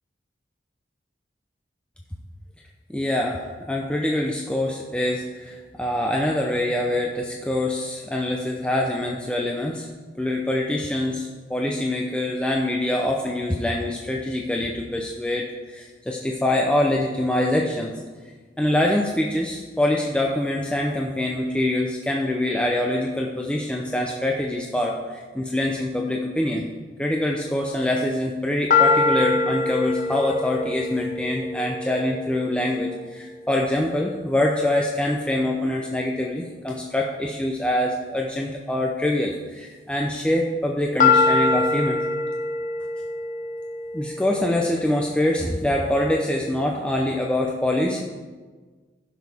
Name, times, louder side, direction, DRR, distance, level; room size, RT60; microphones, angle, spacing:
voice 1, 2.9-9.9 10.2-17.9 18.6-26.6 27.0-42.0 43.9-48.0, left 1 dB, 5° left, -1 dB, 0.6 m, -24 dB
sound 1, 28.7-32.7 41.0-45.1, left 4 dB, 45° left, 0.9 m, -24 dB
15.0 x 6.2 x 3.5 m, 1.4 s
head